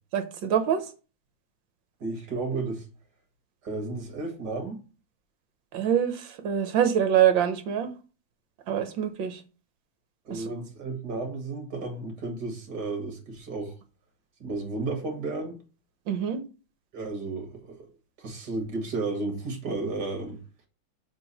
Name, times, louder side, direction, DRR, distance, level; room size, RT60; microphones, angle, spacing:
voice 1, 0.1-0.8 5.7-7.9 8.7-9.4 10.3-10.4 16.1-16.4, right 9 dB, 70° right, 1.6 m, -25 dB
voice 2, 2.0-2.8 3.6-4.8 10.3-13.7 14.4-15.6 16.9-17.9 18.2-20.4, right 3 dB, 55° right, 2.3 m, -33 dB
6.8 x 3.4 x 5.6 m
omnidirectional pair, 2.2 m